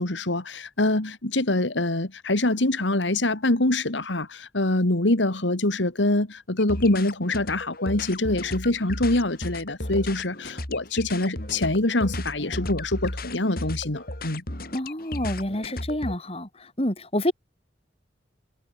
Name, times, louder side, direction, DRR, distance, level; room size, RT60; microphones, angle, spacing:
voice 1, 0.0-14.4, left 2 dB, 85° left, 2.5 m, -25 dB
sound 1, 6.6-16.2, left 1 dB, 55° left, 5.4 m, -34 dB
voice 2, 14.7-17.3, left 1 dB, 30° left, 4.8 m, -28 dB
head